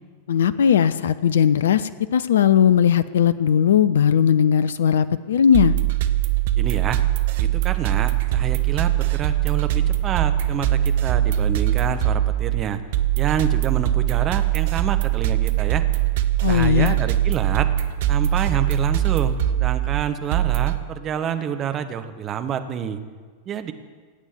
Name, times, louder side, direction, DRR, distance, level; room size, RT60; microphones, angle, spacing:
voice 1, 0.3-5.7 16.4-17.0, left 8 dB, 65° left, 15 dB, 0.5 m, -18 dB
sound 1, 5.5-20.8, right 13 dB, 55° right, 1.0 m, -22 dB
voice 2, 6.6-7.0 7.4-12.8 13.2-15.8 16.5-17.7 18.1-23.0 23.5-23.7, right 8 dB, 30° right, 9 dB, 1.2 m, -28 dB
18.0 x 8.9 x 7.5 m, 1.5 s
figure-of-eight pair, 90°, 0 cm